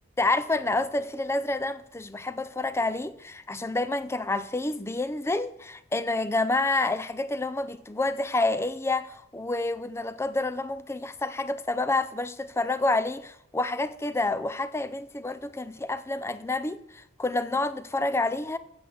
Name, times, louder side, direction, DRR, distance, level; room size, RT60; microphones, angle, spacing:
voice 1, 0.2-18.6, left 2 dB, 10° left, 0.4 m, -28 dB
8.3 x 6.9 x 7.0 m
head